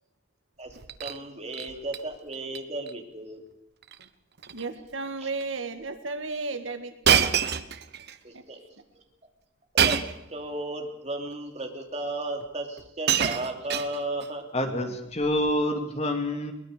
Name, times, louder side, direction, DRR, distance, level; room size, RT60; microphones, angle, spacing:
voice 1, 0.6-3.4 5.2-5.3 8.2-8.6 9.8-10.0 10.3-14.5, right 2 dB, 35° right, 3 dB, 3.0 m, -34 dB
Shatter, 0.7-1.2 1.5-2.0 2.3-2.6 2.9-3.0 3.8-4.1 4.4-4.7 5.4-5.5 7.0-8.2 9.8-10.3 11.3-11.4 12.4-12.5 12.8-14.3 15.2-15.5, right 8 dB, 50° right, 1.0 m, -26 dB
voice 2, 4.5-7.2 8.3-8.4, right 3 dB, 70° right, 9 dB, 1.8 m, -34 dB
voice 3, 14.5-16.5, left 1 dB, 30° left, 5 dB, 2.4 m, -27 dB
22.5 x 19.5 x 6.7 m, 0.76 s
head